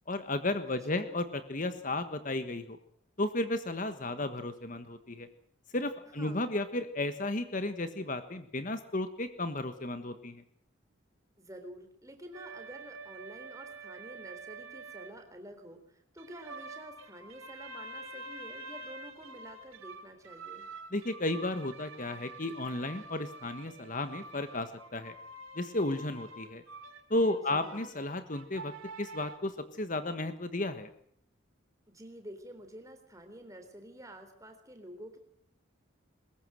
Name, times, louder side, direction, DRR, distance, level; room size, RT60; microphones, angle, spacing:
voice 1, 0.1-2.8 3.2-5.3 5.7-10.4 20.9-25.1 25.5-26.6 27.1-28.7 29.0-30.9, left 2 dB, 40° left, 9 dB, 1.4 m, -33 dB
voice 2, 6.2-6.5 11.4-20.7 27.5-27.9 31.9-35.2, right 1 dB, 15° right, 6 dB, 3.9 m, -49 dB
sound 1, 12.3-15.1 16.2-29.4, right 3 dB, 85° right, 3.2 m, -47 dB
22.5 x 21.0 x 7.8 m, 0.64 s
head